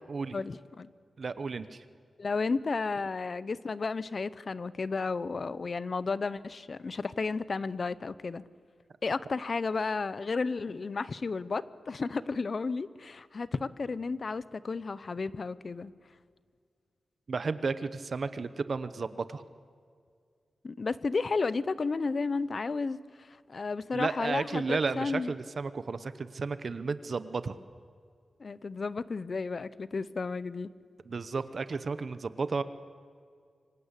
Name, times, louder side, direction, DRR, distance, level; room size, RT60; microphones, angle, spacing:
voice 1, 0.3-0.9 2.2-8.4 9.0-15.9 20.6-25.3 28.4-30.7, left 4 dB, 40° left, 17 dB, 0.8 m, -33 dB
voice 2, 1.2-1.8 17.3-19.4 23.9-27.6 31.1-32.6, right 4 dB, 45° right, 12 dB, 1.0 m, -33 dB
28.5 x 24.5 x 8.4 m, 2.1 s
wide cardioid pair, 145°, 0 cm